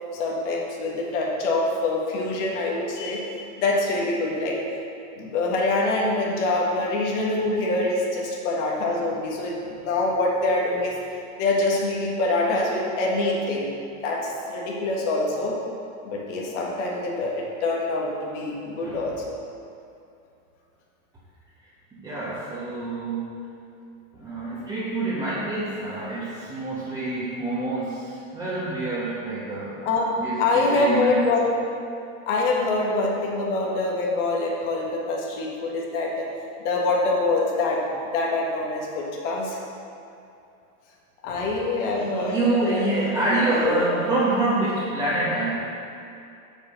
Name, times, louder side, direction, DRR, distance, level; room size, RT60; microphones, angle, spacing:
voice 1, 0.1-4.6 5.2-10.9 11.4-13.7 14.0-15.5 16.0-19.1 29.8-30.1 30.4-31.5 32.2-36.3 36.6-37.8 38.1-39.6 41.2-42.8 43.5-43.7, left 2 dB, 60° left, -2 dB, 1.6 m, -25 dB
voice 2, 21.9-23.3 24.1-29.8 30.2-31.3 41.9-45.5, right 2 dB, 10° right, -11 dB, 1.4 m, -26 dB
6.7 x 5.4 x 6.4 m, 2.6 s
supercardioid pair, 170°, 40 cm